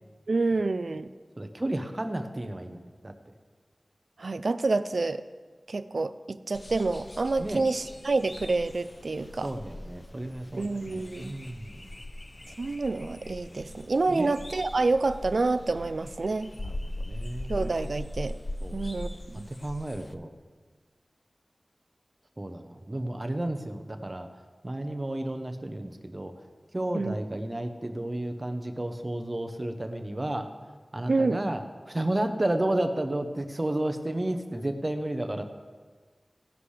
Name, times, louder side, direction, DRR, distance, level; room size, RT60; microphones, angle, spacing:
voice 1, 0.3-1.1 4.2-5.2 5.7-9.5 10.5-11.4 12.6-16.5 17.5-18.4 18.7-19.5 26.9-27.2 31.1-31.4, right 3 dB, 70° right, 12 dB, 0.4 m, -28 dB
voice 2, 1.4-3.1 7.4-7.6 9.4-11.8 14.1-14.3 16.6-17.5 18.6-18.8 19.6-20.3 22.4-24.3 24.6-26.3 26.7-30.5 30.9-31.6 31.9-35.4, right 1 dB, 30° right, 6 dB, 1.0 m, -32 dB
sound 1, 6.5-20.1, left 1 dB, 35° left, 0.6 m, -40 dB
16.5 x 11.0 x 3.3 m, 1.4 s
wide cardioid pair, 65°, 0 cm